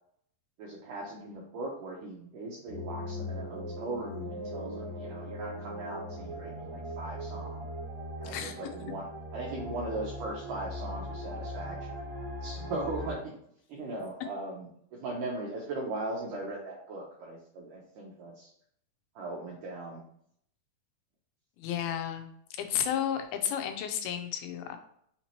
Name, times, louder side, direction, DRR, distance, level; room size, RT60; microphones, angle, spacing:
voice 1, 0.6-7.7 8.2-9.1 9.3-12.0 12.4-13.3 13.7-18.5 19.2-20.0, right 2 dB, 80° right, -3 dB, 1.9 m, -39 dB
sound 1, 2.7-13.2, equal, 40° right, 1.4 m, -39 dB
voice 2, 8.2-8.6 21.6-22.3 22.6-24.8, left 9 dB, 85° left, 6 dB, 2.5 m, -32 dB
5.8 x 2.9 x 2.8 m, 0.68 s
omnidirectional pair, 4.5 m